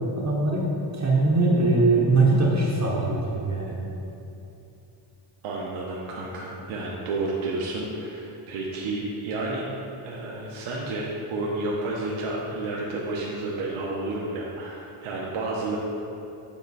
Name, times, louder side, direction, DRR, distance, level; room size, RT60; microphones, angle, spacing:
voice 1, 0.2-3.8, right 2 dB, 35° right, -4 dB, 0.9 m, -22 dB
voice 2, 5.4-9.6 10.0-15.8, right 2 dB, 75° right, -4 dB, 0.9 m, -31 dB
7.2 x 4.4 x 4.1 m, 2.7 s
wide cardioid pair, 160°, 50 cm